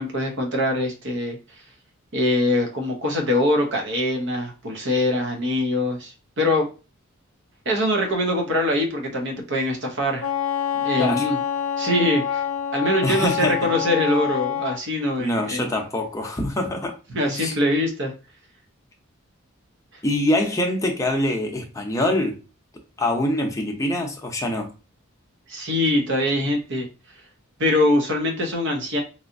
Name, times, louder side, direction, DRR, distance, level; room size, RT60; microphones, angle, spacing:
voice 1, 0.0-1.4 2.1-6.7 7.7-10.3 10.7-11.4 11.8-12.4 12.7-15.7 17.1-18.1 25.5-26.9 27.6-29.0, left 1 dB, 60° right, 2 dB, 0.9 m, -23 dB
Wind instrument woodwind instrument, 10.2-14.8, left 9 dB, 85° left, 0.5 m, -26 dB
voice 2, 13.0-13.7 15.2-16.9 17.3-17.5 20.0-22.4 23.0-24.7, left 1 dB, 15° left, 1 dB, 0.6 m, -24 dB
3.1 x 2.7 x 2.6 m, 0.32 s
head